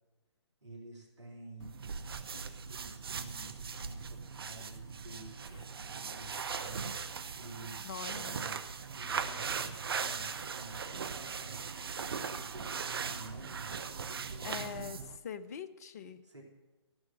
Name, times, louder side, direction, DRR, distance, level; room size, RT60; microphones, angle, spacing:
voice 1, 0.6-2.1 2.7-6.9 7.3-11.6 12.1-14.9 16.2-16.4, right 2 dB, 80° right, 0 dB, 3.2 m, -51 dB
sound 1, 1.6-15.2, right 6 dB, 55° right, 0.8 m, -39 dB
Zipper (clothing), 4.2-4.4 4.9-5.0 5.2-5.8 6.7-6.8 7.7-7.8 8.9-9.4 9.7-10.1, left 2 dB, 20° left, 1.5 m, -60 dB
voice 2, 7.8-8.4 14.4-16.2, left 7 dB, 35° left, 12 dB, 0.6 m, -43 dB
14.5 x 6.3 x 7.4 m, 1.3 s
figure-of-eight pair, 135°, 15 cm